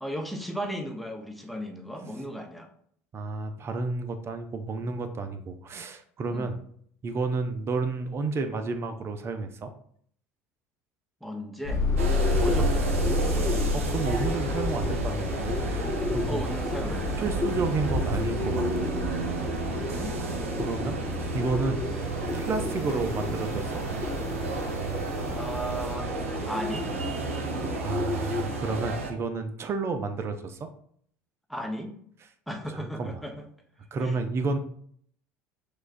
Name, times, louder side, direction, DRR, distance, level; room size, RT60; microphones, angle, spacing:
voice 1, 0.0-2.7 6.3-6.5 11.2-11.8 12.4-12.9 16.2-17.3 19.7-20.1 25.3-26.1 26.5-26.9 31.5-32.0 32.5-33.5 34.0-34.2, equal, ahead, 3 dB, 0.8 m, -35 dB
voice 2, 3.1-6.6 7.0-9.7 13.7-16.4 17.2-18.9 20.6-21.0 21.3-21.8 22.3-23.8 27.8-30.7 32.7-33.2 33.9-34.6, right 3 dB, 35° right, 8 dB, 0.6 m, -31 dB
sound 1, 11.6-25.9, left 2 dB, 45° left, 0.7 m, -31 dB
Bird, 11.8-28.8, left 4 dB, 20° left, 0.3 m, -35 dB
sound 2, 12.0-29.1, right 3 dB, 85° right, 0.6 m, -32 dB
6.3 x 2.4 x 2.6 m, 0.63 s
hypercardioid pair, 70°, 7 cm